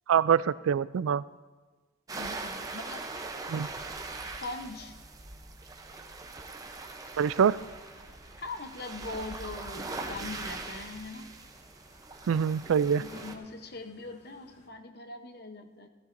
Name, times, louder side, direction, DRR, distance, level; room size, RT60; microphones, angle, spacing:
voice 1, 0.1-1.2 3.5-3.7 7.2-7.6 12.3-13.0, right 7 dB, 90° right, 17 dB, 0.3 m, -24 dB
sound 1, 2.1-13.4, right 3 dB, 20° right, 0.6 m, -41 dB
voice 2, 2.2-3.1 4.4-5.0 8.4-11.3 13.0-15.9, left 2 dB, 50° left, 6 dB, 0.8 m, -41 dB
sound 2, 7.4-14.7, left 1 dB, 35° left, 1.9 m, -53 dB
16.5 x 14.5 x 2.6 m, 1.3 s
head